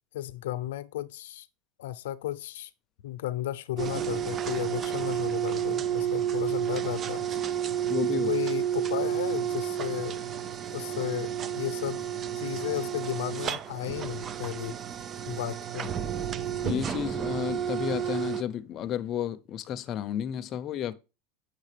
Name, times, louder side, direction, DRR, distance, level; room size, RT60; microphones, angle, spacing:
voice 1, 0.1-1.5 1.8-2.7 3.0-7.2 8.2-10.2 10.7-12.0 12.4-14.8 15.2-15.9, left 14 dB, 90° left, 0.6 m, -34 dB
sound 1, 3.8-18.4, right 9 dB, 25° right, 0.4 m, -31 dB
voice 2, 7.9-8.3 16.6-20.9, left 9 dB, 30° left, 0.6 m, -32 dB
7.9 x 6.6 x 3.3 m
supercardioid pair, 165°, 0 cm